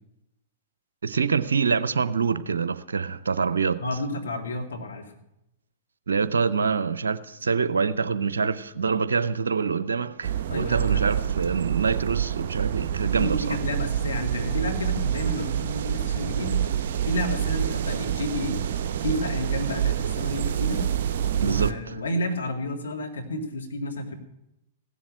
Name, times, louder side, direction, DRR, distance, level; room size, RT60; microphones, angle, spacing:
voice 1, 1.0-3.8 6.1-13.6 20.8-20.9 21.4-21.9, right 5 dB, 80° right, 0.7 m, -25 dB
voice 2, 3.8-5.2 10.5-11.1 13.0-16.6 17.0-18.6 19.0-20.8 21.4-24.1, left 1 dB, 80° left, 2.3 m, -31 dB
sound 1, 10.2-21.7, right 9 dB, 60° right, 0.9 m, -27 dB
16.0 x 7.2 x 8.8 m
hypercardioid pair, 115°, 0 cm